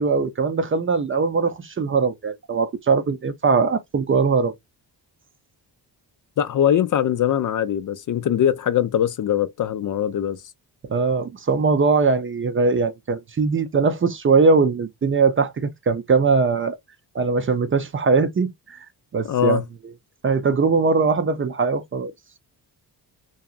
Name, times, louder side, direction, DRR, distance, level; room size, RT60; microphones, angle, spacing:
voice 1, 0.0-4.5 10.9-16.8 17.1-18.8 19.1-19.6 20.2-22.1, right 4 dB, 30° right, 0.5 m, -21 dB
voice 2, 6.4-10.4 19.2-19.6, left 10 dB, 50° left, 0.5 m, -21 dB
2.7 x 2.3 x 2.3 m
cardioid pair, 110°, 42 cm